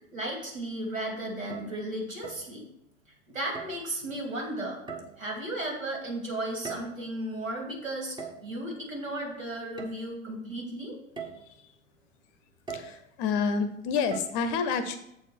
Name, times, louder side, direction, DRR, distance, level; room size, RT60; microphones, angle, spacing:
voice 1, 0.1-2.7 3.3-4.8 5.2-8.2 8.4-10.9, right 1 dB, 75° right, 0 dB, 2.6 m, -34 dB
sound 1, 1.3-1.8 2.2-2.5 3.5-3.9 4.9-5.4 6.4-7.1 8.2-8.5 9.8-9.9 10.5-10.6 11.2-11.5 12.7-13.0 14.1-14.3, right 5 dB, 10° right, 0.8 m, -40 dB
voice 2, 12.7-15.0, left 5 dB, 30° left, 10 dB, 0.7 m, -29 dB
7.6 x 4.5 x 6.0 m, 0.77 s
figure-of-eight pair, 95°, 40 cm